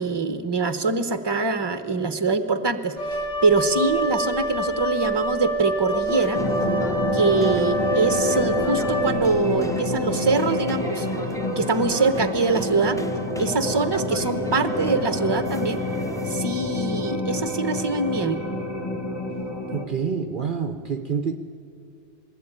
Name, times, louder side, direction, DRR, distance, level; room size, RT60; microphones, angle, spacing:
voice 1, 0.0-2.9 3.4-6.4 7.1-11.1 11.6-13.0 13.4-15.8 16.2-18.4, right 3 dB, 25° right, 10 dB, 1.0 m, -23 dB
Wind instrument woodwind instrument, 3.0-9.5, right 2 dB, 75° left, 2.6 m, -27 dB
sound 1, 5.9-16.4, equal, 5° left, 0.6 m, -38 dB
sound 2, 6.3-19.8, left 2 dB, 20° left, 1.9 m, -27 dB
voice 2, 19.7-21.4, right 6 dB, 50° right, 8 dB, 0.8 m, -27 dB
21.0 x 16.0 x 9.0 m, 2.5 s
omnidirectional pair, 1.2 m